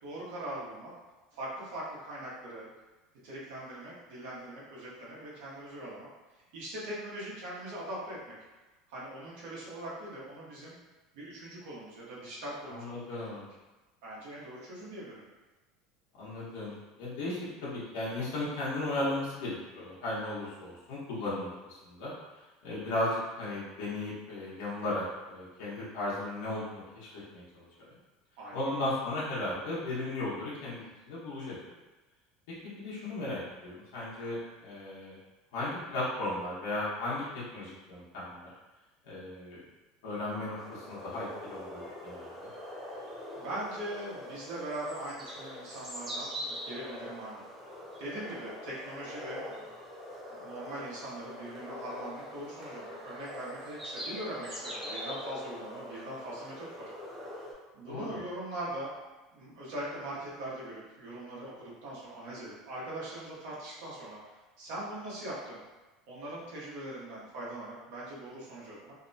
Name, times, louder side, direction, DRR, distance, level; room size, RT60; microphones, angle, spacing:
voice 1, 0.0-0.9 1.3-2.7 3.2-6.1 6.5-8.3 8.9-10.7 11.1-12.9 14.0-15.3 28.4-28.8 43.4-47.4 48.0-49.6 50.4-56.7 57.7-58.9 59.3-64.2 64.6-65.6 66.1-68.9, right 1 dB, 65° right, -7 dB, 0.8 m, -41 dB
voice 2, 12.6-13.5 16.2-22.1 22.6-27.7 28.5-31.5 32.6-35.1 35.5-38.5 39.0-39.6 40.0-42.5 57.9-58.2, left 2 dB, 80° left, -9 dB, 0.9 m, -36 dB
sound 1, 40.6-57.5, left 1 dB, 10° right, 0.5 m, -43 dB
2.7 x 2.1 x 2.6 m, 1.1 s
cardioid pair, 180°, 0 cm